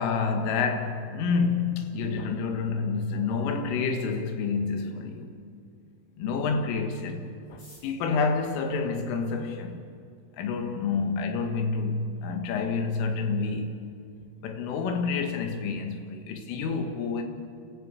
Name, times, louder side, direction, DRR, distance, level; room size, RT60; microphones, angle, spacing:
voice 1, 0.0-5.4 6.2-9.8 10.4-13.8 14.4-17.2, left 4 dB, 80° left, 4 dB, 4.2 m, -28 dB
sound 1, 7.4-9.7 10.5-10.6 10.8-10.9 11.1-11.6 11.9-12.0 12.2-12.7 13.0-13.2 13.5-13.8, left 1 dB, 25° left, 7.2 m, -58 dB
30.0 x 14.0 x 8.3 m, 2.3 s
omnidirectional pair, 5.7 m